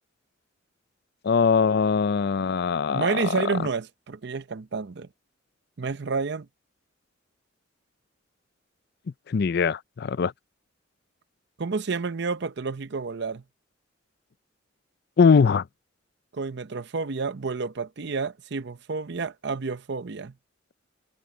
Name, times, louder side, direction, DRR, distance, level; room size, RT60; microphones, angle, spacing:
voice 1, 1.2-3.3 9.3-10.3 15.2-15.6, left 5 dB, 55° left, 0.4 m, -21 dB
voice 2, 2.9-5.1 5.8-6.5 11.6-13.4 16.3-20.3, right 4 dB, 60° right, 0.7 m, -30 dB
head